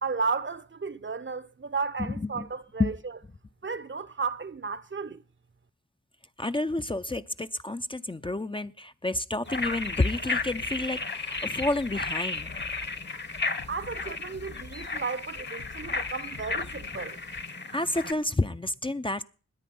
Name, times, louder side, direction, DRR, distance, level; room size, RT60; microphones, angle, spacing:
voice 1, 0.0-2.9 3.6-5.2 13.7-17.2, right 4 dB, 40° right, 0.9 m, -33 dB
voice 2, 2.0-2.5 2.8-2.9 6.4-12.5 17.7-19.2, left 2 dB, 15° left, 0.6 m, -30 dB
sound 1, 9.5-18.1, left 3 dB, 35° left, 1.3 m, -34 dB
sound 2, 9.6-17.6, left 4 dB, 60° left, 1.4 m, -48 dB
20.5 x 8.3 x 5.5 m
cardioid pair, 45°, 29 cm